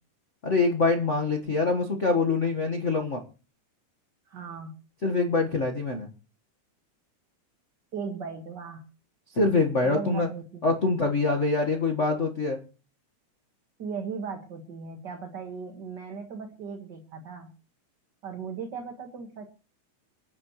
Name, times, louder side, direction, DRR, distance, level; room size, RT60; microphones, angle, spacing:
voice 1, 0.4-3.2 5.0-6.1 9.3-10.3 10.6-12.6, left 3 dB, 40° left, 4 dB, 1.1 m, -24 dB
voice 2, 4.3-4.8 7.9-8.9 9.8-10.6 13.8-17.5 18.2-19.5, right 5 dB, 40° right, 4 dB, 1.9 m, -37 dB
26.5 x 9.6 x 3.1 m, 0.34 s
omnidirectional pair, 3.5 m